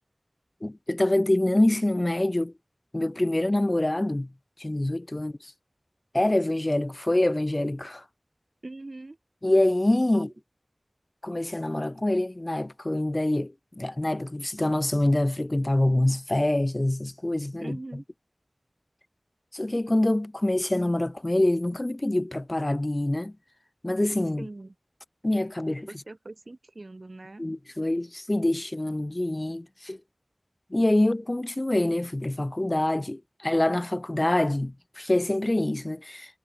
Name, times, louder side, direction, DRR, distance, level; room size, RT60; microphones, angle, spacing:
voice 1, 0.6-2.5 2.9-4.3 4.6-5.5 6.1-8.0 9.4-10.3 11.2-17.8 19.5-23.3 23.8-24.4 25.2-25.9 27.4-30.0 30.7-36.4, left 1 dB, 35° left, 0.8 m, -25 dB
voice 2, 8.6-9.2 10.1-10.2 17.6-18.0 24.4-24.7 25.9-27.5, right 2 dB, 65° right, 4.6 m, -41 dB
wide cardioid pair, 45°, 0 cm